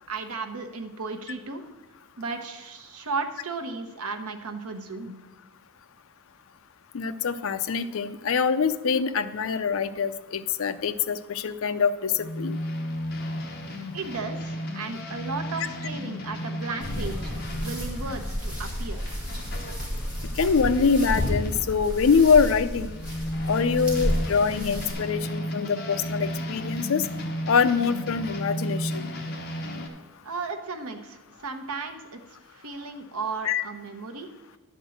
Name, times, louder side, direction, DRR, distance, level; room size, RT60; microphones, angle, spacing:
voice 1, 0.1-1.6 2.2-5.1 13.9-19.2 30.2-32.2 32.5-34.3, right 4 dB, 75° right, 5 dB, 1.0 m, -35 dB
voice 2, 6.9-12.6 20.3-22.9 23.5-27.0 27.5-29.1 33.5-33.6, left 5 dB, 60° left, 12 dB, 0.5 m, -24 dB
sound 1, 12.2-21.6 22.0-29.9, equal, 45° left, 1.2 m, -34 dB
sound 2, 16.8-24.9, equal, 5° right, 2.1 m, -31 dB
10.5 x 4.5 x 7.7 m, 1.2 s
head